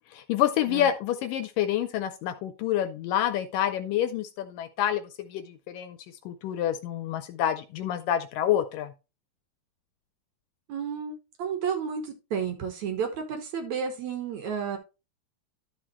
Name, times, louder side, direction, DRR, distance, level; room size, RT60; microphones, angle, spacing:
voice 1, 0.1-6.0 6.3-8.9, left 11 dB, 75° left, 11 dB, 2.1 m, -28 dB
voice 2, 10.7-14.8, right 7 dB, 65° right, 5 dB, 2.1 m, -32 dB
12.0 x 6.1 x 3.0 m, 0.28 s
omnidirectional pair, 4.3 m